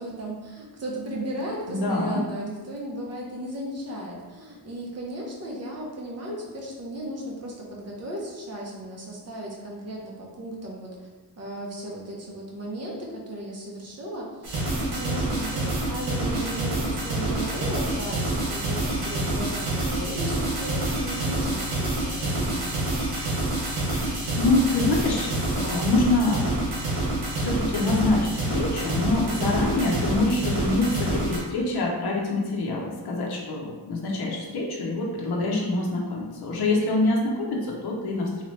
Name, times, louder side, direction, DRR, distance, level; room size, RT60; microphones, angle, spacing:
voice 1, 0.0-11.1 11.4-22.8, right 1 dB, 40° right, -3 dB, 0.8 m, -35 dB
voice 2, 1.7-2.2 24.4-26.4 27.4-38.4, left 2 dB, 75° left, -2 dB, 0.7 m, -25 dB
sound 1, 14.4-31.4, right 1 dB, 80° right, 1.2 m, -27 dB
3.2 x 2.8 x 3.1 m, 1.3 s
wide cardioid pair, 145°, 39 cm